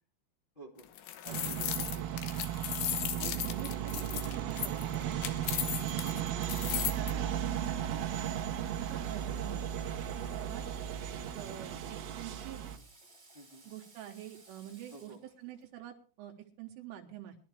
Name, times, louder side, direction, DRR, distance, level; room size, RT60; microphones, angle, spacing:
voice 1, 0.5-0.9 1.2-2.2 13.3-13.7 14.9-15.2, right 2 dB, 20° left, -2 dB, 1.2 m, -50 dB
sound 1, 0.8-7.1, left 11 dB, 75° left, 3.2 m, -36 dB
sound 2, 1.3-12.8, right 10 dB, 65° right, 2.8 m, -36 dB
voice 2, 1.5-1.8 3.2-5.4 6.0-6.2 7.0-8.1 8.6-9.7 10.2-10.6 11.3-12.7 13.7-17.4, right 12 dB, 85° right, 3 dB, 3.7 m, -46 dB
Water / Water tap faucet, 7.2-15.7, right 2 dB, 20° right, 6.1 m, -59 dB
21.0 x 12.0 x 3.3 m, 0.38 s
omnidirectional pair, 5.6 m